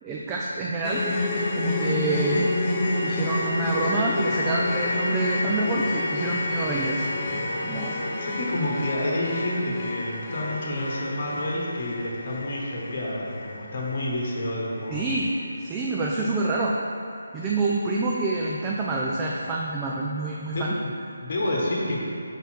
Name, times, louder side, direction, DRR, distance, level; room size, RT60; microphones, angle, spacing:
voice 1, 0.0-1.0 1.6-2.5 3.0-7.1 7.7-8.0 14.9-15.3 15.6-16.7 17.3-20.8, right 3 dB, 15° right, -3 dB, 0.4 m, -27 dB
sound 1, 0.8-15.0 15.3-15.5 15.9-16.0, left 2 dB, 25° left, 0.7 m, -29 dB
voice 2, 7.8-15.0 20.5-20.7 21.2-22.0, left 1 dB, 45° left, -3 dB, 1.2 m, -29 dB
5.4 x 4.1 x 4.4 m, 2.6 s
figure-of-eight pair, 155°, 0 cm